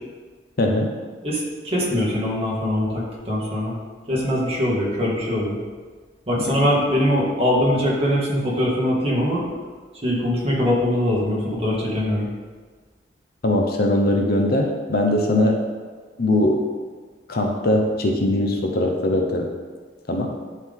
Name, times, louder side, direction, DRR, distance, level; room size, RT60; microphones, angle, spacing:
voice 1, 0.6-0.9 6.5-6.6 13.4-15.6 16.2-16.7 17.3-19.5 20.1-20.3, left 1 dB, 60° left, 2 dB, 0.9 m, -20 dB
voice 2, 1.2-3.7 4.1-5.6 6.3-9.4 10.0-12.3, left 1 dB, 35° right, -5 dB, 2.0 m, -22 dB
11.0 x 4.1 x 3.7 m, 1.5 s
head